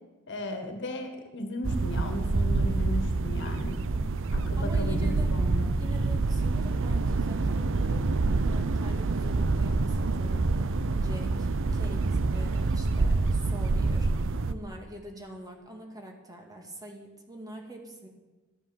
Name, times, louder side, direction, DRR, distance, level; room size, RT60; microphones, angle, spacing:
voice 1, 0.3-3.8 4.3-5.7, left 1 dB, 55° left, 6 dB, 1.9 m, -35 dB
sound 1, 1.6-14.5, right 3 dB, 60° right, 0.7 m, -27 dB
voice 2, 3.9-5.3 5.8-18.1, right 1 dB, 15° right, 2 dB, 2.4 m, -45 dB
13.5 x 9.6 x 7.2 m, 1.2 s
head